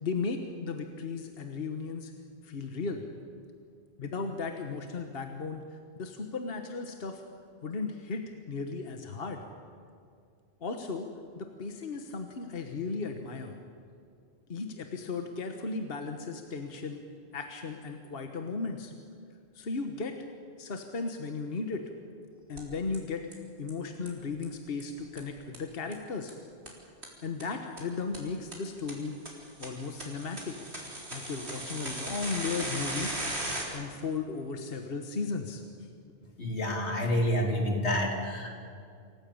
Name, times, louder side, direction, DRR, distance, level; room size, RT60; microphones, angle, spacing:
voice 1, 0.0-2.1 2.4-3.0 4.0-7.2 7.6-9.4 10.6-11.1 11.4-13.5 14.5-17.0 17.3-18.9 19.5-20.2 20.6-21.9 22.5-26.3 27.2-29.2 29.6-30.6 31.1-33.1 33.7-35.9, left 4 dB, 60° left, 5 dB, 1.5 m, -36 dB
sound 1, 22.6-22.7 22.9-23.0 23.3-23.4 23.7-23.8 24.1-24.2 24.4-24.5 24.8-24.9 25.2-25.3 25.5-25.6 25.9-26.0 26.3-26.4 26.7-26.8 27.0-27.1 27.4-27.5 27.8-27.9 28.1-28.2 28.5-28.6 28.9-29.0 29.3-33.6, right 1 dB, 70° right, 4.2 m, -37 dB
voice 2, 36.4-38.5, equal, 90° left, 1 dB, 3.5 m, -28 dB
27.0 x 15.0 x 8.7 m, 2.3 s
omnidirectional pair, 1.1 m